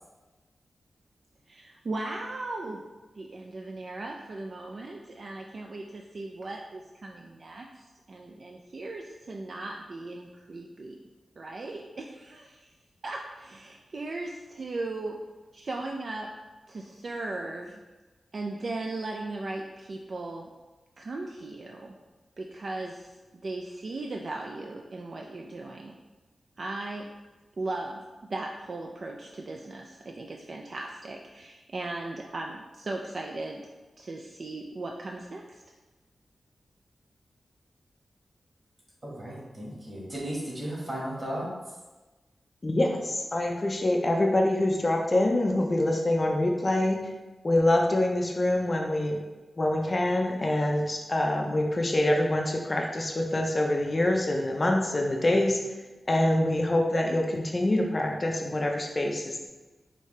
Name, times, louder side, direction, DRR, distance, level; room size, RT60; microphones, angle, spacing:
voice 1, 1.5-2.8 3.2-11.0 11.4-12.7 13.0-15.2 15.5-16.3 16.7-17.8 18.3-20.5 21.0-22.0 22.4-26.0 26.6-27.1 27.6-28.0 28.3-33.6 34.0-35.6, right 2 dB, 50° right, 1 dB, 0.3 m, -37 dB
voice 2, 39.0-41.5, right 1 dB, 35° right, -5 dB, 1.5 m, -35 dB
voice 3, 42.6-47.1 47.4-49.2 49.6-55.6 56.1-59.5, left 1 dB, 30° left, 1 dB, 0.4 m, -25 dB
4.9 x 2.7 x 3.2 m, 1.2 s
wide cardioid pair, 130°, 0 cm